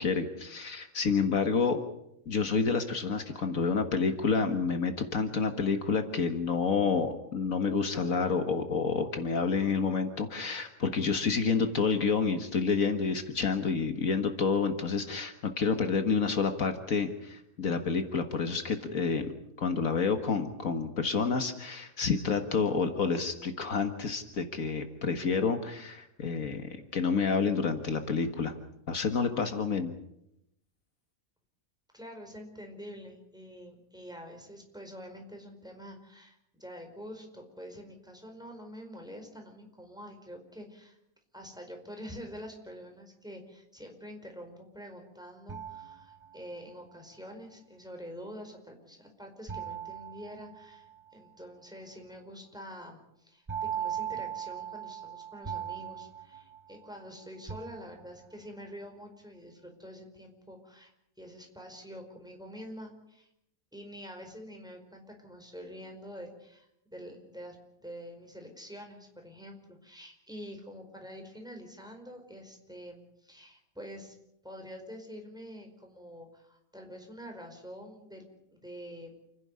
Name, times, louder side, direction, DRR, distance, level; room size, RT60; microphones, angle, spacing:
voice 1, 0.0-1.8 2.3-19.3 19.6-28.5 28.9-29.9, left 5 dB, 65° left, 7 dB, 1.9 m, -29 dB
voice 2, 31.9-41.0 41.3-60.9 61.2-63.3 63.7-74.1 74.4-79.1, equal, 5° right, 3 dB, 4.7 m, -46 dB
sound 1, 45.5-46.7 49.5-51.1 53.5-57.1 57.5-58.4, right 9 dB, 25° right, 0.7 m, -39 dB
29.0 x 11.0 x 9.7 m, 0.81 s
omnidirectional pair, 1.5 m